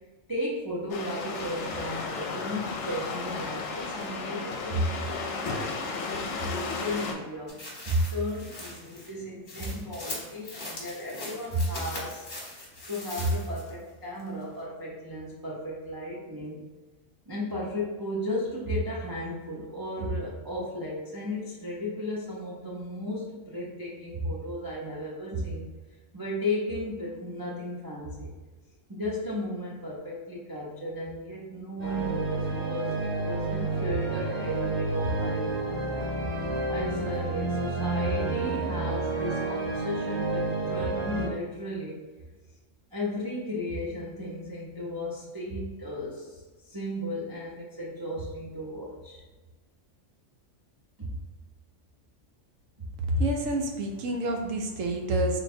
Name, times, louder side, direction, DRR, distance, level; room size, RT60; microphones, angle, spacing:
voice 1, 0.3-12.3 12.9-16.6 17.3-25.7 26.1-28.3 28.9-36.0 36.7-42.0 42.9-49.2 51.0-51.1, equal, 30° right, -6 dB, 0.4 m, -34 dB
sound 1, 0.9-7.1, left 4 dB, 70° left, 0.9 m, -34 dB
sound 2, 7.5-13.8 14.2-14.3, left 1 dB, 40° left, 1.1 m, -41 dB
sound 3, 31.8-41.3, right 2 dB, 60° right, 1.3 m, -30 dB
voice 2, 53.1-55.4, right 1 dB, 80° right, 3 dB, 1.0 m, -28 dB
3.8 x 2.2 x 4.2 m, 1.3 s
omnidirectional pair, 1.3 m